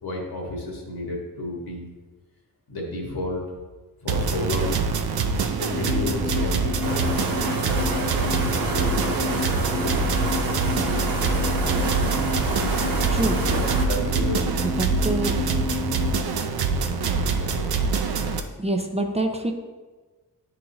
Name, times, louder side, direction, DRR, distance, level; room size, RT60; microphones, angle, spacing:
voice 1, 0.0-1.9 2.7-3.4 4.0-4.8 5.6-7.3 7.6-10.0 11.7-12.1 12.7-14.5 17.3-17.7, left 1 dB, 85° left, -1 dB, 1.7 m, -33 dB
sound 1, 4.1-18.4, right 5 dB, 80° right, 0.6 m, -25 dB
sound 2, 5.7-16.2, left 4 dB, 35° left, 0.9 m, -31 dB
sound 3, 6.8-13.8, right 2 dB, 65° right, 1.0 m, -29 dB
voice 2, 13.1-13.5 14.6-15.4 18.6-19.5, right 2 dB, 20° right, 3 dB, 0.4 m, -26 dB
10.5 x 3.9 x 2.9 m, 1.3 s
wide cardioid pair, 145°, 37 cm